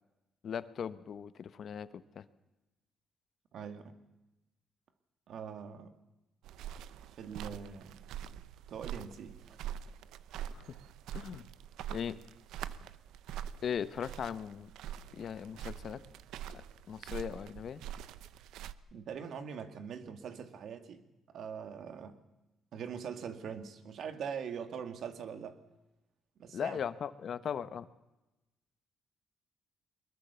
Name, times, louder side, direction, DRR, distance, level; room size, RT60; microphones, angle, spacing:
voice 1, 0.4-2.2 10.5-10.6 11.1-11.4 11.9-12.2 13.6-14.7 15.1-16.0 16.9-17.8 26.5-27.9, left 8 dB, 60° left, 14 dB, 1.1 m, -38 dB
voice 2, 3.5-4.0 5.3-5.9 7.1-8.0 8.7-9.8 18.9-21.0 21.3-22.2 22.7-25.6 26.4-26.8, right 7 dB, 65° right, 9 dB, 2.3 m, -42 dB
sound 1, 6.4-18.7, right 10 dB, 85° right, 0.8 m, -44 dB
23.0 x 21.0 x 7.0 m, 1.0 s
cardioid pair, 90°, 0 cm